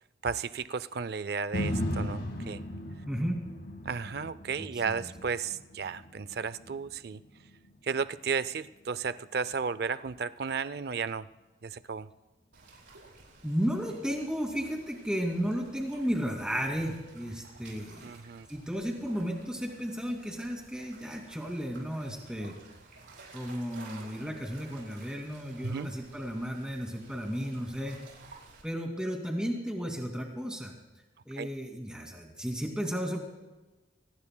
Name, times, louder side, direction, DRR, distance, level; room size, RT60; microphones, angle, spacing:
voice 1, 0.2-2.6 3.9-7.2 7.8-11.3 11.6-12.1 18.0-18.5 25.6-25.9 31.4-31.5, right 5 dB, 55° right, 15 dB, 0.4 m, -34 dB
sound 1, 1.5-9.7 10.2-10.3, equal, 70° left, 1.7 m, -38 dB
voice 2, 3.1-3.4 4.6-5.1 13.4-18.2 18.5-22.6 23.3-28.0 28.6-30.7 31.3-33.2, equal, 5° right, 1 dB, 2.4 m, -34 dB
sound 2, 12.5-28.6, right 3 dB, 80° right, 5.3 m, -54 dB
24.0 x 20.0 x 2.3 m, 1.1 s
head